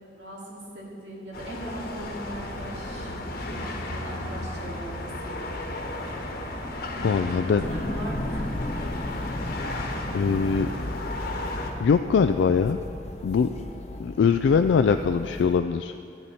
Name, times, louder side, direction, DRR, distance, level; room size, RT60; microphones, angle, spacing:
voice 1, 0.1-3.1 3.4-5.4 6.9-8.5, right 1 dB, 80° right, -4 dB, 2.5 m, -39 dB
sound 1, 1.3-11.7, left 1 dB, 60° left, 1.2 m, -34 dB
voice 2, 7.0-7.7 10.1-10.7 11.8-12.8 13.2-13.5 14.0-15.9, left 6 dB, 90° left, 8 dB, 0.3 m, -22 dB
sound 2, 7.6-15.6, left 1 dB, 40° left, 0.8 m, -35 dB
13.5 x 9.3 x 4.3 m, 2.4 s
head